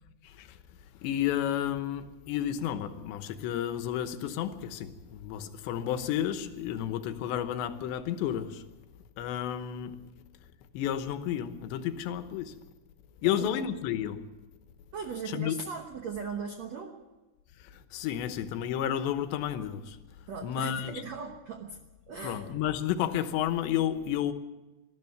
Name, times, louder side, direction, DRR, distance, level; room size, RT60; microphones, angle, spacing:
voice 1, 0.2-0.6 1.0-8.7 9.2-10.0 10.7-12.6 13.2-14.3 15.3-15.6 17.6-20.0 20.4-21.0 22.2-24.3, left 10 dB, 90° left, 3.3 m, -31 dB
voice 2, 14.9-17.0 20.3-21.8 22.1-22.4, right 5 dB, 75° right, 1.5 m, -38 dB
20.0 x 13.5 x 9.4 m
omnidirectional pair, 4.9 m